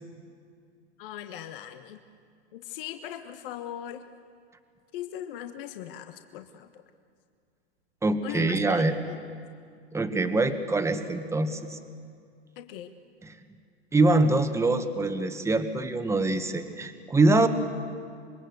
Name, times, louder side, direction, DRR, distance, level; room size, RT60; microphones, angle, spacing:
voice 1, 1.0-2.0 2.5-4.1 4.9-6.7 8.2-9.2 12.6-12.9, left 10 dB, 55° left, 7 dB, 1.4 m, -39 dB
voice 2, 8.0-9.0 9.9-11.8 13.2-13.3 13.9-17.5, right 2 dB, 10° right, 8 dB, 1.6 m, -24 dB
26.0 x 22.0 x 8.1 m, 2.2 s
hypercardioid pair, 115°, 33 cm